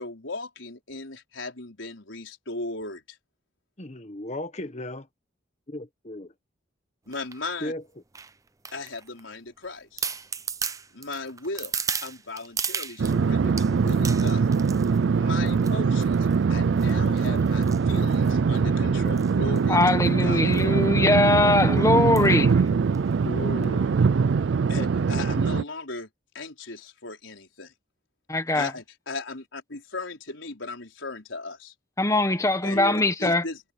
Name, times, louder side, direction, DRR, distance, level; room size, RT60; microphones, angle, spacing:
voice 1, 0.0-3.2 7.1-7.7 8.7-10.1 10.9-11.7 12.0-14.5 15.1-20.5 24.7-26.1 26.3-27.7 28.5-31.7 32.6-32.8 33.2-33.6, left 3 dB, 85° left, 4.6 m, -37 dB
voice 2, 3.8-5.1 5.7-6.3 7.6-7.8 21.3-22.3 23.2-23.9 32.7-33.0, left 1 dB, 35° left, 1.5 m, -35 dB
sound 1, 7.1-7.4 8.1-9.2 9.6-9.7 10.0-13.2 13.6-15.0 15.5-15.7 16.0-16.4 16.8-18.6 19.1-19.3 19.6-19.7 19.9-20.1 20.5-20.7 21.0-21.1 22.2-22.4 22.9-23.0, right 6 dB, 20° right, 0.6 m, -34 dB
sound 2, 13.0-25.6, right 5 dB, 70° right, 0.4 m, -22 dB
voice 3, 19.7-22.5 28.3-28.7 32.0-33.4, left 2 dB, 15° left, 1.2 m, -21 dB
head